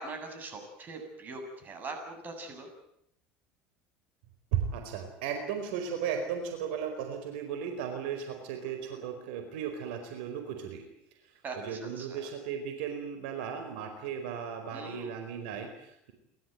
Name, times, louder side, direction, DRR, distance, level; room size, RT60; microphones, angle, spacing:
voice 1, 0.0-2.7 8.9-9.0 11.4-12.3 14.7-15.1, right 3 dB, 35° right, 5 dB, 7.9 m, -42 dB
voice 2, 4.5-10.8 11.6-16.1, right 7 dB, 85° right, 6 dB, 4.6 m, -35 dB
30.0 x 14.0 x 9.4 m, 0.78 s
supercardioid pair, 115°, 5 cm